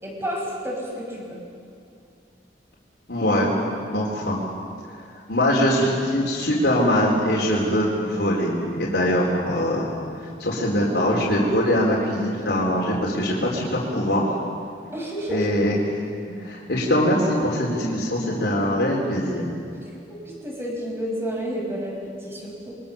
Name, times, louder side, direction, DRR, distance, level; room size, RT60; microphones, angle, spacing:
voice 1, 0.0-1.4 14.9-15.6 20.1-22.8, equal, 15° right, -2 dB, 5.8 m, -30 dB
voice 2, 3.1-3.6 3.9-4.4 5.3-9.9 10.2-14.3 15.3-15.8 16.4-19.5, equal, 75° left, -4 dB, 4.1 m, -22 dB
27.5 x 23.0 x 7.1 m, 2.5 s
head